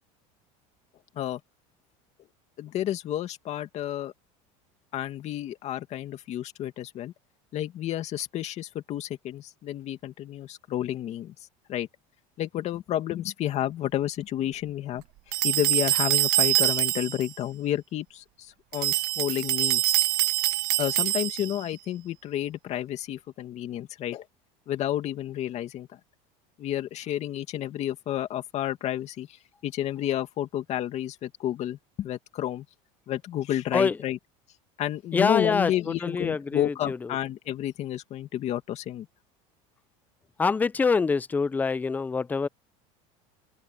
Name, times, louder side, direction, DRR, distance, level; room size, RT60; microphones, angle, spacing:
voice 1, 2.6-4.1 4.9-7.1 7.5-11.3 11.7-11.9 12.4-15.0 15.4-20.0 20.8-24.2 24.7-25.9 26.6-29.3 29.6-32.7 33.1-34.2 34.8-39.1, left 12 dB, 40° left, 2.3 m, -31 dB
sound 1, 15.3-17.3 18.7-21.6, right 18 dB, 60° right, 1.3 m, -25 dB
voice 2, 35.1-35.7 36.0-37.0 40.4-42.5, left 4 dB, 10° left, 0.4 m, -25 dB
open air
cardioid pair, 150°, 17 cm